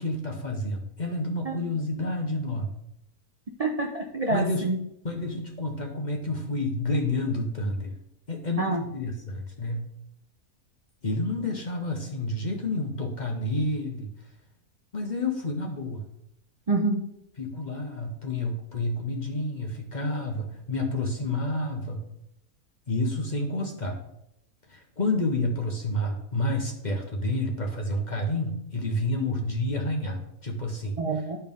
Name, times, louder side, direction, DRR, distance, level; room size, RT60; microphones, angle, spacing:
voice 1, 0.0-2.8 4.3-4.6 5.0-7.9 8.3-9.9 11.0-14.1 14.9-16.1 17.4-22.0 22.9-24.0 24.7-31.2, left 1 dB, 35° left, 2 dB, 0.8 m, -29 dB
voice 2, 3.6-4.8 8.6-8.8 16.7-17.0 31.0-31.4, right 3 dB, 50° right, 2 dB, 0.4 m, -27 dB
12.0 x 4.5 x 3.5 m, 0.79 s
omnidirectional pair, 1.6 m